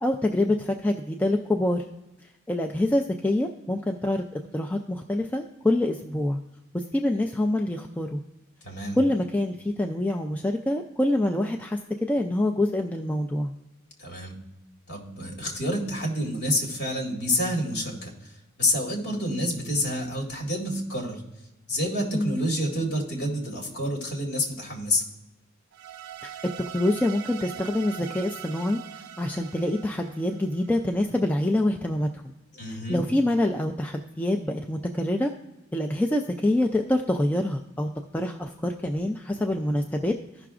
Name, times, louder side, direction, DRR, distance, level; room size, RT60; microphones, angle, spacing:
voice 1, 0.0-1.9 2.5-6.4 6.7-8.2 8.9-13.5 22.1-22.4 26.2-32.3 32.7-35.3 35.7-40.2, left 1 dB, 10° left, 2 dB, 0.3 m, -26 dB
voice 2, 8.6-9.0 14.0-14.3 14.9-18.1 18.6-21.2 21.7-25.0 32.5-33.0, left 1 dB, 55° left, -1 dB, 2.0 m, -28 dB
sound 1, 25.7-30.9, right 10 dB, 90° right, 0.4 m, -41 dB
15.0 x 5.8 x 2.4 m, 0.97 s
head